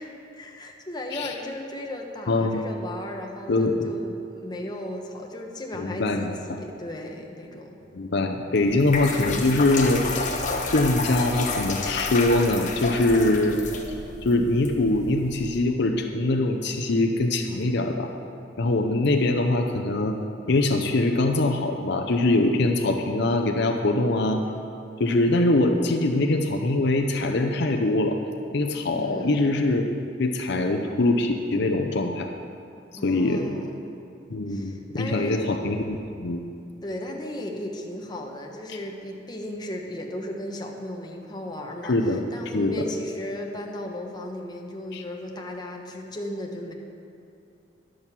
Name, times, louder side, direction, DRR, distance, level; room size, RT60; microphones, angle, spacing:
voice 1, 0.0-7.8 28.9-29.5 33.0-33.8 34.5-35.5 36.8-46.7, left 1 dB, 25° left, 1 dB, 1.0 m, -36 dB
voice 2, 2.3-2.6 3.5-3.7 5.7-6.6 7.9-10.4 10.7-13.6 14.2-18.1 18.6-20.2 20.5-24.4 25.0-28.2 28.5-29.8 30.2-32.3 33.0-33.4 34.3-36.4 41.8-42.2 42.5-42.7 44.9-45.0, left 2 dB, 65° left, 4 dB, 0.7 m, -23 dB
sound 1, 8.6-15.6, left 3 dB, 45° left, 1.1 m, -31 dB
10.5 x 6.4 x 7.3 m, 2.5 s
head